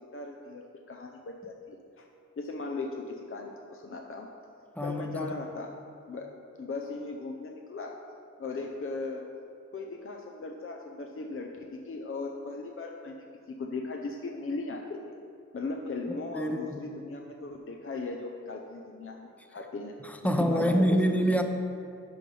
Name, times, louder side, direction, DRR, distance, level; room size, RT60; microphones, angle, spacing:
voice 1, 0.1-2.1 2.4-4.3 4.8-5.7 6.1-6.3 6.6-8.0 8.4-9.2 9.7-13.3 13.6-15.0 15.5-19.9 20.2-21.0, left 3 dB, 45° left, 2 dB, 0.6 m, -38 dB
voice 2, 4.8-5.3 16.3-16.8 20.0-21.4, equal, 5° left, 5 dB, 0.7 m, -26 dB
12.0 x 5.3 x 3.3 m, 2.5 s
wide cardioid pair, 70°, 30 cm